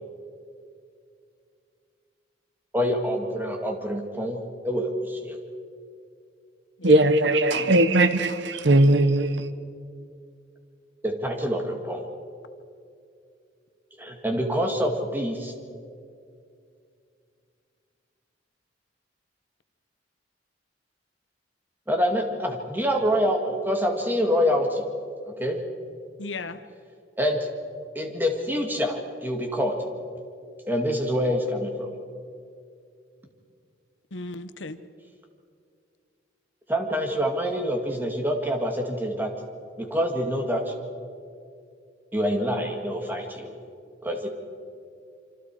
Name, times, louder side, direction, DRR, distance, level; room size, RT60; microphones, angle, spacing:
voice 1, 2.7-5.4 11.0-12.0 14.0-15.5 21.9-24.8 25.2-25.6 27.2-27.5 28.0-29.8 30.7-31.9 36.7-39.3 39.8-40.7 42.1-43.6 44.0-44.3, equal, 10° right, 2.2 m, -26 dB
voice 2, 6.8-9.5, right 1 dB, 70° right, 1.1 m, -19 dB
voice 3, 26.2-26.6 34.1-34.8, left 3 dB, 80° left, 1.0 m, -36 dB
26.5 x 25.0 x 4.8 m
head